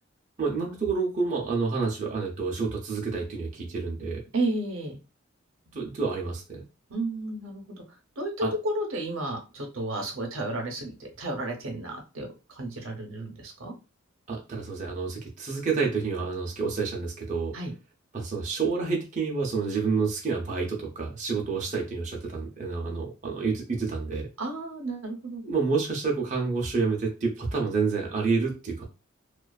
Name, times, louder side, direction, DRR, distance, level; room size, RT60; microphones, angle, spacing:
voice 1, 0.4-4.2 5.7-6.6 8.4-8.5 14.3-17.5 18.1-24.3 25.4-28.9, right 4 dB, 35° right, 0 dB, 0.5 m, -29 dB
voice 2, 4.3-5.0 6.9-7.8 8.2-13.7 17.5-17.7 24.4-25.4, right 2 dB, 80° right, 2 dB, 0.7 m, -32 dB
2.4 x 2.3 x 2.3 m, 0.30 s
head